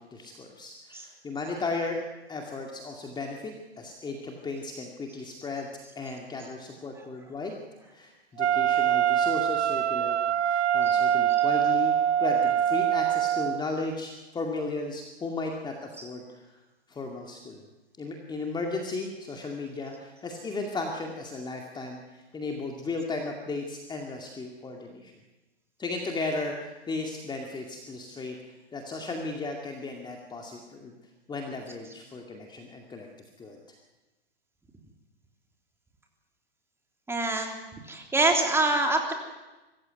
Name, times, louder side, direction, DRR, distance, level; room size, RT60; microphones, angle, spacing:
voice 1, 0.0-2.0 2.3-5.7 6.0-7.5 7.8-10.2 10.4-11.9 12.2-16.6 16.9-17.6 18.0-25.1 25.8-28.4 28.7-31.0 31.3-33.1 33.4-33.6, left 3 dB, 15° left, 1 dB, 2.3 m, -35 dB
Wind instrument woodwind instrument, 8.4-13.6, right 10 dB, 80° right, 0.8 m, -24 dB
voice 2, 37.1-37.6 37.9-39.1, right 2 dB, 5° right, 2 dB, 3.2 m, -25 dB
24.5 x 15.0 x 9.6 m, 1.1 s
hypercardioid pair, 120°, 33 cm